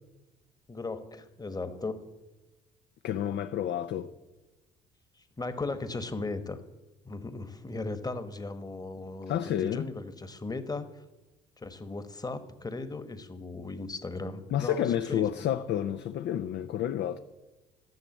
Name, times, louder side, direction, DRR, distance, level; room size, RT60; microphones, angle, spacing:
voice 1, 0.7-2.0 5.4-6.6 7.0-10.9 11.6-15.2, left 3 dB, 20° left, 1.3 m, -37 dB
voice 2, 3.0-4.1 9.3-9.9 14.5-17.2, left 10 dB, 60° left, 0.6 m, -30 dB
12.0 x 6.9 x 7.2 m
supercardioid pair, 70°, 21 cm